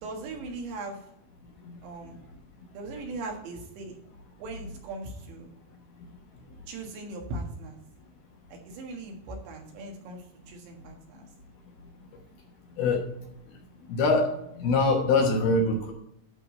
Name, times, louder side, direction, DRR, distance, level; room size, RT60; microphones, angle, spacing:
voice 1, 0.0-1.0 1.8-2.2 2.7-4.0 4.4-5.5 6.7-7.8 8.5-11.3, right 2 dB, 75° right, 1 dB, 3.8 m, -39 dB
voice 2, 13.9-15.9, left 3 dB, 70° left, 1 dB, 2.7 m, -23 dB
11.5 x 3.8 x 7.4 m, 0.77 s
omnidirectional pair, 5.3 m